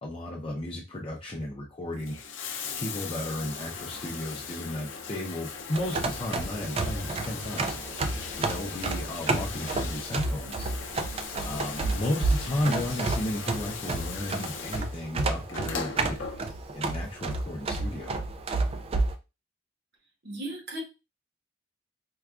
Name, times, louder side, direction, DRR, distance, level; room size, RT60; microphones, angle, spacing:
voice 1, 0.0-2.2 2.7-7.7 8.4-10.7 11.4-16.2 16.7-18.2, left 1 dB, 30° left, -2 dB, 0.5 m, -34 dB
Bathtub (filling or washing), 1.9-16.8 18.0-18.1, left 5 dB, 75° left, 0.5 m, -39 dB
sound 1, 5.7-19.1, right 3 dB, 30° right, 0.3 m, -31 dB
sound 2, 7.0-16.7, right 1 dB, 80° right, 1.5 m, -50 dB
voice 2, 20.2-20.8, right 1 dB, 55° right, 0 dB, 1.1 m, -36 dB
4.6 x 2.3 x 2.3 m, 0.28 s
head